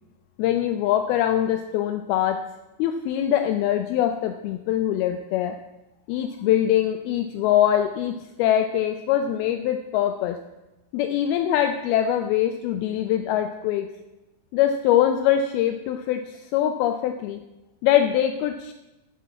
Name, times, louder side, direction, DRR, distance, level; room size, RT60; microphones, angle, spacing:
voice 1, 0.4-2.4 2.8-5.6 6.1-10.4 10.9-13.9 14.5-17.4 17.8-18.7, left 11 dB, 80° left, 8 dB, 2.4 m, -23 dB
11.0 x 7.4 x 9.3 m, 1.0 s
omnidirectional pair, 4.6 m